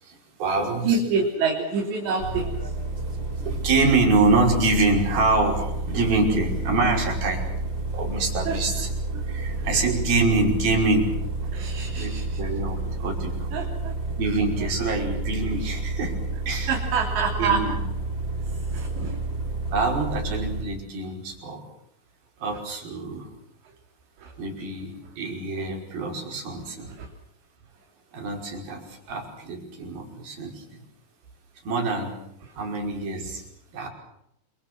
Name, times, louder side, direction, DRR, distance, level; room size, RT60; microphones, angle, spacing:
voice 1, 0.0-1.0 3.4-7.5 7.9-8.9 9.3-11.1 11.9-13.5 14.2-16.7 17.4-17.8 19.7-21.7 22.4-23.3 24.4-26.9 28.1-30.8 31.7-32.2 32.6-33.4 33.7-33.9, right 3 dB, 55° right, 1 dB, 7.0 m, -25 dB
voice 2, 0.8-2.5 8.5-8.6 9.1-9.3 11.5-12.4 13.5-13.9 14.6-14.7 16.7-17.6 18.5-19.2 22.5-22.6 24.2-24.3 27.0-27.1, right 5 dB, 75° right, 0 dB, 5.7 m, -27 dB
sound 1, 2.2-20.6, right 2 dB, 25° right, 4.9 m, -30 dB
28.0 x 26.0 x 6.3 m, 0.77 s
omnidirectional pair, 5.1 m